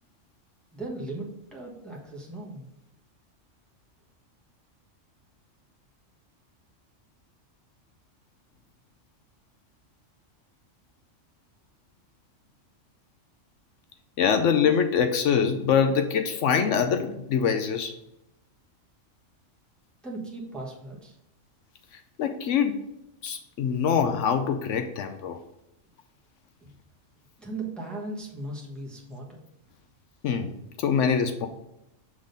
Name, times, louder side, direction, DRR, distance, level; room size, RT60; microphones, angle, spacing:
voice 1, 0.7-2.7 14.4-14.6 20.0-21.2 26.6-26.7 27.4-29.4, right 2 dB, ahead, -2 dB, 1.0 m, -37 dB
voice 2, 14.2-18.0 21.9-22.8 23.2-25.4 30.2-31.5, left 7 dB, 70° left, 7 dB, 0.9 m, -24 dB
6.3 x 3.7 x 5.1 m, 0.86 s
omnidirectional pair, 1.3 m